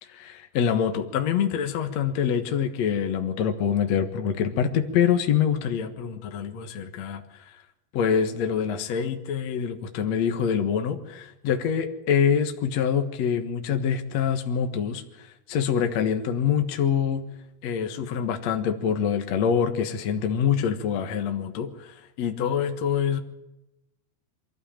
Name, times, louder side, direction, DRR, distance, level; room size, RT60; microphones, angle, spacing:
voice 1, 0.0-7.6 7.9-17.2 17.6-23.2, left 8 dB, 60° left, 6 dB, 1.9 m, -25 dB
24.5 x 14.5 x 8.7 m, 0.93 s
omnidirectional pair, 4.8 m